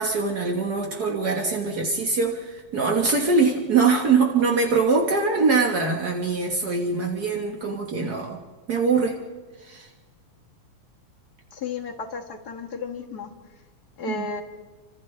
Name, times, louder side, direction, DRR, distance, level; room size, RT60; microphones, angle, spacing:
voice 1, 0.0-8.4 8.7-9.2 9.6-9.9 14.1-14.3, right 4 dB, 55° right, 0 dB, 1.1 m, -23 dB
voice 2, 11.5-13.3 14.0-14.4, left 4 dB, 55° left, 2 dB, 1.1 m, -33 dB
30.0 x 26.0 x 3.3 m, 1.4 s
omnidirectional pair, 4.0 m